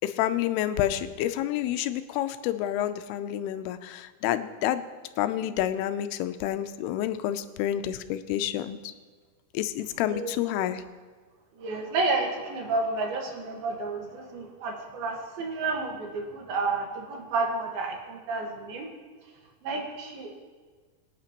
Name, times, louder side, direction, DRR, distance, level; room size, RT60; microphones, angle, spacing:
voice 1, 0.0-4.8 5.2-8.9 9.5-10.8, left 12 dB, 90° left, 10 dB, 2.6 m, -29 dB
voice 2, 11.6-18.9 19.6-20.3, right 3 dB, 75° right, 1 dB, 3.3 m, -30 dB
23.5 x 9.0 x 3.0 m, 1.5 s
omnidirectional pair, 4.5 m